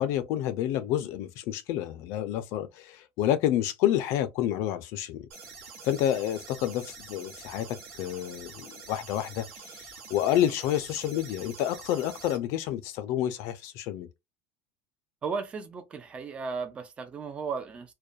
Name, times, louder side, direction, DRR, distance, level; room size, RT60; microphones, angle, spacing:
voice 1, 0.0-5.3 5.8-14.1, left 11 dB, 60° left, 0.4 m, -29 dB
sound 1, 5.3-12.4, right 4 dB, 65° right, 1.0 m, -46 dB
voice 2, 15.2-17.9, right 5 dB, 20° right, 0.4 m, -35 dB
2.3 x 2.1 x 2.6 m
cardioid pair, 155°, 6 cm